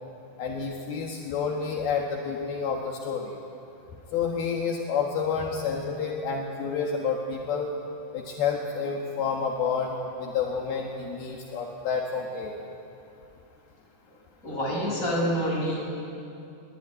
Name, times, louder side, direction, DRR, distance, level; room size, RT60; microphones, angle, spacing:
voice 1, 0.4-3.3 4.1-7.7 8.1-12.5, left 5 dB, 70° left, 0 dB, 3.3 m, -29 dB
voice 2, 14.4-15.8, equal, 20° left, -3 dB, 7.1 m, -27 dB
22.5 x 19.0 x 9.9 m, 2.6 s
omnidirectional pair, 4.7 m